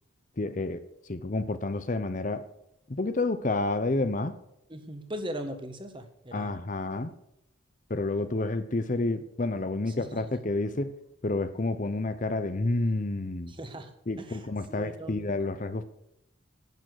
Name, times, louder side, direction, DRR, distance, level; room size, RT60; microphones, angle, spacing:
voice 1, 0.4-0.8 1.1-2.5 2.9-4.4 6.3-7.1 7.9-11.0 11.2-13.5 14.1-15.8, left 2 dB, 40° left, 11 dB, 0.7 m, -29 dB
voice 2, 4.7-6.5 9.9-10.2 13.5-13.9 14.2-15.5, equal, 25° right, 7 dB, 1.4 m, -39 dB
11.0 x 8.9 x 8.0 m, 0.81 s
head